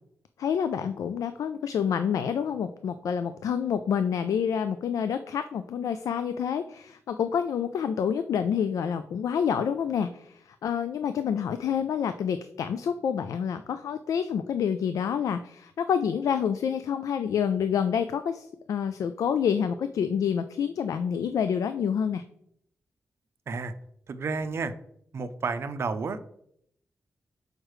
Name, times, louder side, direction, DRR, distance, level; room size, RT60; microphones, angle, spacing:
voice 1, 0.4-10.3 10.6-22.2, left 7 dB, 90° left, 10 dB, 0.3 m, -28 dB
voice 2, 24.1-24.7 25.1-26.2, right 4 dB, 50° right, 11 dB, 0.5 m, -31 dB
6.4 x 4.9 x 3.1 m, 0.70 s
wide cardioid pair, 145°, 6 cm